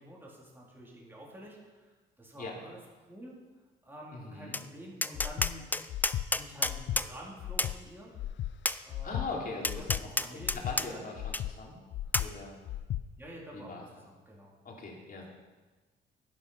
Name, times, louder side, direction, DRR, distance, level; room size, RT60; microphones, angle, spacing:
voice 1, 0.0-1.9 2.2-2.8 3.1-3.4 3.8-5.7 6.3-8.1 8.9-9.4 9.8-11.0 13.2-14.5, equal, 10° right, -4 dB, 3.9 m, -48 dB
voice 2, 4.1-4.6 9.0-11.8 12.2-12.5 13.5-13.8 14.6-15.3, left 3 dB, 45° left, -2 dB, 3.5 m, -41 dB
Tap, 4.5-4.7 5.0-7.1 7.6-7.7 8.7-8.8 9.6-10.9 11.3-11.4 12.1-12.3, left 2 dB, 10° left, 0.4 m, -30 dB
Breathing, 5.1-5.5 5.9-6.3 6.6-7.0 7.4-7.8 8.2-8.5 8.9-9.3 9.7-10.0 10.4-10.8 11.2-11.5 11.9-12.3 12.7-13.0, left 13 dB, 65° left, 0.5 m, -35 dB
11.5 x 10.0 x 5.8 m, 1.3 s
cardioid pair, 90°, 20 cm